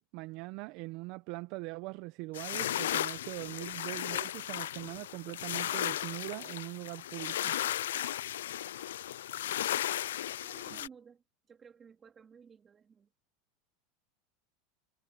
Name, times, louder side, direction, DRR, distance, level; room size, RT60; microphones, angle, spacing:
voice 1, 0.0-7.5, right 23 dB, 60° right, 0.9 m, -42 dB
sound 1, 2.3-10.9, left 12 dB, 90° left, 0.6 m, -35 dB
voice 2, 10.4-13.1, right 6 dB, 25° right, 3.5 m, -55 dB
supercardioid pair, 110°, 0 cm